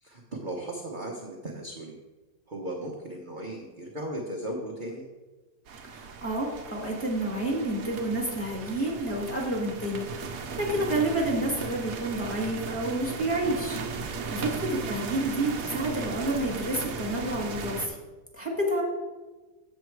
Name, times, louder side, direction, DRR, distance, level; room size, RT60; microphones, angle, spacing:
voice 1, 0.0-1.9 2.5-5.1, right 1 dB, 40° right, -1 dB, 0.8 m, -37 dB
sound 1, 5.7-17.9, right 5 dB, 60° right, 1.2 m, -37 dB
voice 2, 5.9-18.0 18.3-18.8, right 1 dB, 10° left, -2 dB, 1.8 m, -29 dB
7.5 x 7.2 x 4.6 m, 1.2 s
omnidirectional pair, 1.8 m